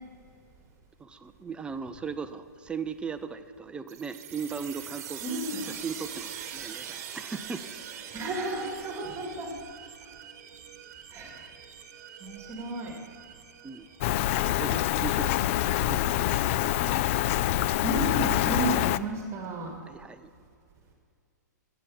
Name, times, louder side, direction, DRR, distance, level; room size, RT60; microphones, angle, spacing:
voice 1, 1.0-5.2 5.5-7.7 13.6-13.9 14.2-17.0 19.9-20.3, right 5 dB, 10° right, 10 dB, 0.5 m, -38 dB
sound 1, 3.9-15.3, right 9 dB, 50° right, 1.3 m, -43 dB
voice 2, 5.2-5.7 8.1-9.5 11.1-11.4 12.2-12.9 17.8-19.7, right 2 dB, 25° right, 1 dB, 2.1 m, -32 dB
Rain, 14.0-19.0, left 14 dB, 45° left, 0.3 m, -26 dB
11.0 x 8.2 x 7.2 m, 2.2 s
hypercardioid pair, 125°, 10 cm